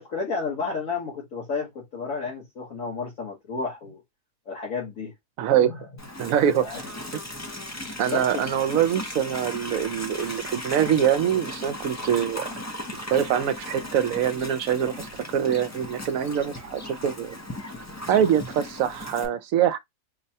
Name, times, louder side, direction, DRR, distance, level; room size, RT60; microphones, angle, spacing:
voice 1, 0.0-4.0 4.5-5.1 5.7-5.8 6.6-6.8 8.0-8.4, left 4 dB, 65° left, 1.5 m, -31 dB
voice 2, 5.4-5.8 6.2-6.7 8.0-12.5 13.1-15.1 15.3-17.4 18.1-19.8, right 9 dB, 70° right, 1.0 m, -24 dB
Livestock farm animals working animals, 6.0-19.3, left 1 dB, 25° left, 0.4 m, -37 dB
4.6 x 2.2 x 2.7 m
omnidirectional pair, 1.6 m